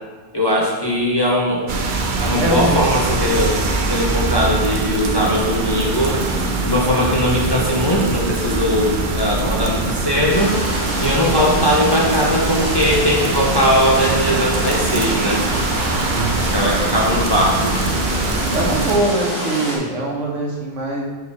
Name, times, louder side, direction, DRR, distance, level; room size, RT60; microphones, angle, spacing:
voice 1, 0.3-1.7 2.2-3.6 3.9-6.2 6.6-10.6 11.0-15.4 16.5-17.8, equal, 25° left, -3 dB, 0.7 m, -19 dB
sound 1, 1.7-19.0, right 3 dB, 50° right, 0.7 m, -22 dB
voice 2, 2.4-2.8 16.0-16.4 18.5-21.0, right 2 dB, 75° right, 0 dB, 1.4 m, -22 dB
sound 2, 10.3-19.8, equal, 10° right, 1.8 m, -26 dB
5.5 x 4.6 x 4.8 m, 1.4 s
omnidirectional pair, 1.3 m